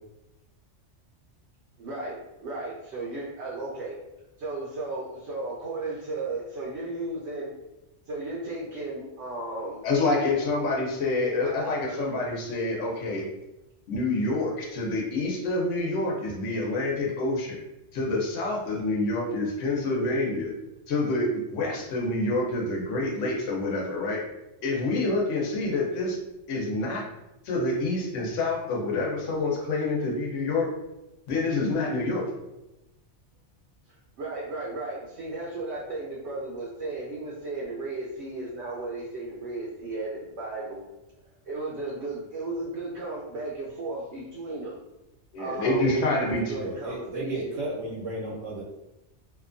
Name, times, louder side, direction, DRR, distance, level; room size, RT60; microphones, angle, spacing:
voice 1, 1.8-3.9 4.4-7.5 8.1-9.8 11.4-12.0 33.9-40.8 41.4-44.8 45.4-47.5, right 2 dB, 70° right, -5 dB, 0.8 m, -35 dB
voice 2, 9.8-13.2 13.9-17.6 17.9-20.5 20.9-24.2 24.6-26.2 26.5-27.0 27.4-30.7 31.3-32.2 45.3-46.5, left 2 dB, 80° left, -2 dB, 1.0 m, -27 dB
voice 3, 46.6-48.6, right 2 dB, 90° right, -5 dB, 1.2 m, -33 dB
2.7 x 2.2 x 2.5 m, 0.95 s
omnidirectional pair, 1.3 m